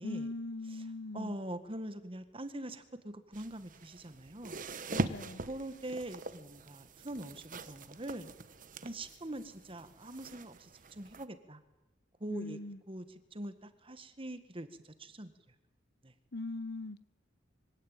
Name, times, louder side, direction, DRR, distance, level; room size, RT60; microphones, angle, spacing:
voice 1, 0.0-1.4 4.9-5.4 12.3-12.8 16.3-17.0, left 2 dB, 65° left, 15 dB, 1.2 m, -40 dB
voice 2, 1.1-4.6 5.5-8.3 8.8-11.6 12.2-12.6 12.9-13.0 13.3-15.3 16.0-16.1, right 1 dB, 30° right, 10 dB, 1.7 m, -43 dB
sound 1, 3.3-11.2, right 2 dB, 50° right, 1.2 m, -42 dB
24.5 x 17.0 x 9.0 m, 0.97 s
head